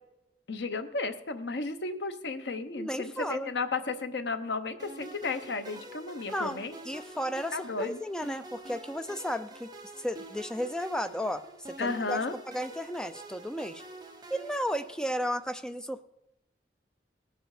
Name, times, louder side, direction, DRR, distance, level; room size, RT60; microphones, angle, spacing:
voice 1, 0.5-6.7 7.5-8.0 11.8-12.3, left 3 dB, 80° left, 9 dB, 0.9 m, -33 dB
voice 2, 2.8-3.5 6.3-9.7 10.0-13.8 14.3-16.0, equal, 5° left, 10 dB, 0.5 m, -34 dB
sound 1, 4.8-15.5, right 2 dB, 25° right, 1.1 m, -47 dB
18.5 x 7.7 x 4.9 m, 0.89 s
head